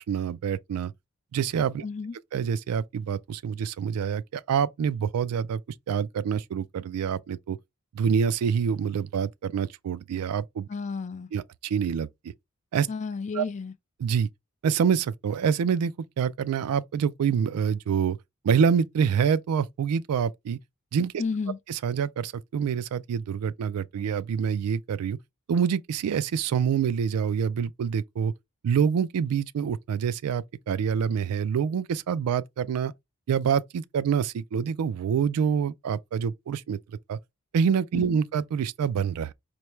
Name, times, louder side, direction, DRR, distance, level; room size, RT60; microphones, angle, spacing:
voice 1, 0.1-0.9 1.3-1.8 2.3-5.6 5.9-7.6 7.9-10.7 11.3-12.1 12.7-12.9 13.3-13.5 14.0-14.3 14.6-18.2 18.4-20.6 20.9-21.1 21.7-25.2 25.5-28.3 28.6-32.9 33.3-36.8 37.1-37.2 37.5-39.3, right 7 dB, 85° right, 0.3 m, -26 dB
voice 2, 1.8-2.2 10.7-11.3 12.9-13.7 21.2-21.6 37.9-38.2, left 4 dB, 30° left, 0.3 m, -32 dB
4.4 x 2.2 x 3.1 m
head